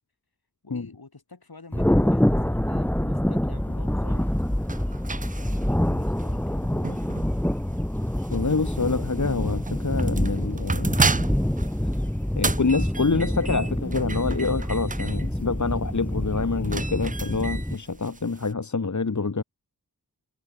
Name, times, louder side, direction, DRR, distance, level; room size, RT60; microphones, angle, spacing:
voice 1, 0.6-4.3 5.1-7.1, left 3 dB, 80° left, 5.8 m, -48 dB
Thunder, 1.7-17.7, left 1 dB, 5° left, 1.0 m, -26 dB
sound 1, 4.0-18.5, right 4 dB, 25° right, 0.4 m, -33 dB
voice 2, 8.3-11.0 12.4-19.4, left 4 dB, 50° left, 1.4 m, -26 dB
wide cardioid pair, 50°, 36 cm